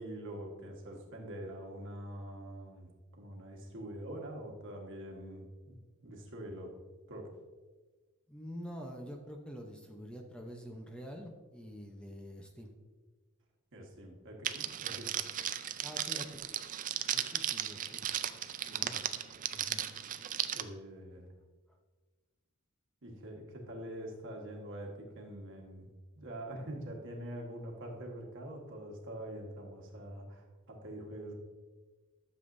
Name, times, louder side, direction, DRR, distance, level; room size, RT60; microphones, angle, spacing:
voice 1, 0.0-5.8 6.0-6.8 7.1-7.3 13.7-15.4 18.7-19.0 20.5-21.3 23.0-31.3, right 1 dB, 60° right, 1 dB, 1.4 m, -45 dB
voice 2, 8.3-12.7 15.0-15.2 15.8-16.4 17.1-18.1 19.5-19.9, equal, 5° left, 2 dB, 0.7 m, -46 dB
Crackle, 14.4-20.6, right 10 dB, 40° right, 0.4 m, -36 dB
12.0 x 7.1 x 2.6 m, 1.3 s
head